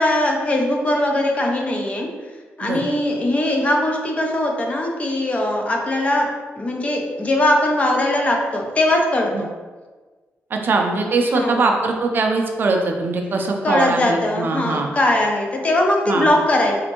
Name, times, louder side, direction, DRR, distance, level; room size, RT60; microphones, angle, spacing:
voice 1, 0.0-2.1 2.6-9.5 11.3-11.6 13.6-16.8, left 1 dB, 30° left, 1 dB, 0.5 m, -20 dB
voice 2, 10.5-14.9 16.1-16.3, right 3 dB, 45° right, 2 dB, 0.4 m, -21 dB
4.1 x 2.6 x 2.9 m, 1.4 s
wide cardioid pair, 140°, 5 cm